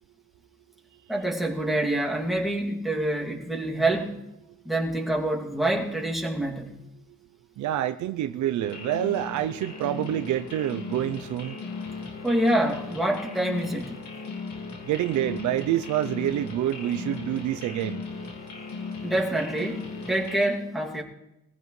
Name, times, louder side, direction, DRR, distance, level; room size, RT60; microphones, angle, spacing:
voice 1, 1.1-4.2 4.6-6.8 12.2-14.0 19.0-21.0, right 1 dB, ahead, 2.4 m, -26 dB
voice 2, 7.6-11.6 14.9-18.0, right 12 dB, 75° right, 0.6 m, -27 dB
sound 1, 8.6-20.4, left 4 dB, 75° left, 2.1 m, -37 dB
21.5 x 15.0 x 3.2 m
cardioid pair, 90°, 30 cm